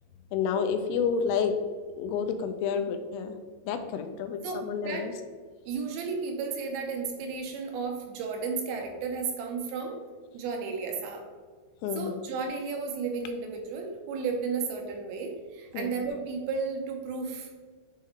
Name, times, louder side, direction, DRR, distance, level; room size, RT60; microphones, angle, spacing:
voice 1, 0.3-1.5 2.0-3.3 3.7-5.1 11.8-12.2 15.7-15.9, left 6 dB, 85° left, 7 dB, 3.2 m, -29 dB
voice 2, 4.4-5.1 5.6-10.0 10.3-11.2 11.9-17.5, right 5 dB, 80° right, 2 dB, 3.4 m, -33 dB
10.5 x 3.8 x 3.2 m, 1.5 s
omnidirectional pair, 5.9 m